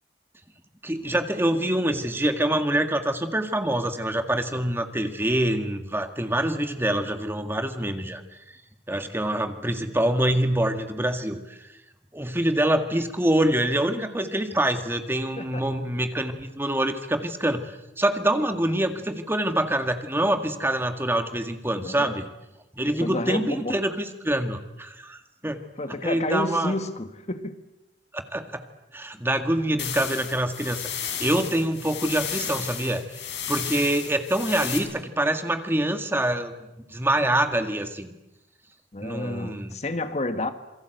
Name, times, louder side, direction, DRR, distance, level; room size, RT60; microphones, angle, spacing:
voice 1, 0.8-8.2 8.5-8.6 8.9-11.7 12.1-22.3 22.8-25.6 26.0-26.7 28.1-28.6 28.9-33.2 33.5-36.5 36.9-38.1 39.0-39.7, right 1 dB, 15° right, 7 dB, 1.9 m, -25 dB
voice 2, 21.8-22.2 23.0-23.8 25.8-27.6 38.9-40.5, left 2 dB, 40° left, 9 dB, 1.5 m, -30 dB
ind white noise zigzag, 29.8-34.8, left 9 dB, 85° left, 5.6 m, -33 dB
27.5 x 22.5 x 8.0 m, 0.93 s
head